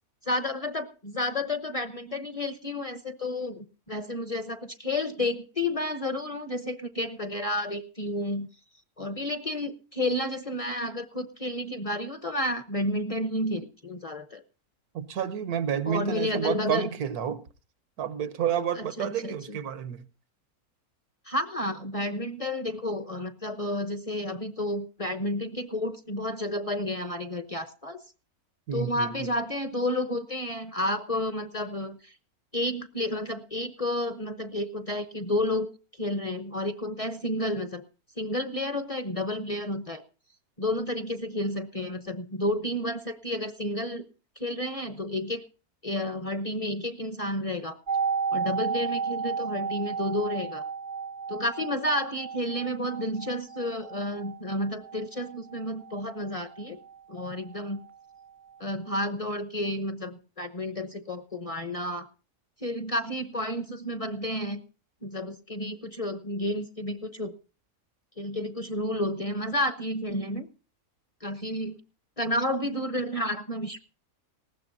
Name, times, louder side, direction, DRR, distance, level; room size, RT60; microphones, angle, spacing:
voice 1, 0.3-8.5 9.0-14.4 15.9-16.9 18.8-19.6 21.3-28.0 28.7-32.1 32.5-35.7 36.0-37.8 38.2-40.0 40.6-44.0 44.4-45.4 45.8-47.8 48.3-50.7 51.3-56.8 57.1-57.8 58.6-62.1 62.6-64.6 65.0-67.3 68.2-70.5 71.2-71.8 72.2-73.8, left 1 dB, 30° left, 0.8 m, -31 dB
voice 2, 14.9-17.4 18.0-20.0 28.7-29.3, right 9 dB, 85° right, 1.5 m, -30 dB
sound 1, 47.9-57.6 57.9-58.0, right 5 dB, 45° right, 0.7 m, -33 dB
19.5 x 15.5 x 2.7 m
omnidirectional pair, 1.6 m